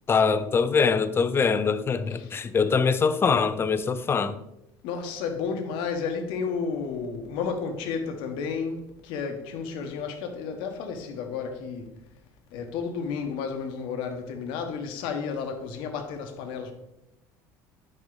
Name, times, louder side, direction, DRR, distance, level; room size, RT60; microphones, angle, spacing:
voice 1, 0.1-4.4, left 5 dB, 25° left, 0.5 m, -23 dB
voice 2, 4.8-11.9 12.5-16.7, left 5 dB, 75° left, 1.2 m, -32 dB
7.9 x 5.3 x 3.9 m
supercardioid pair, 100°, 9 cm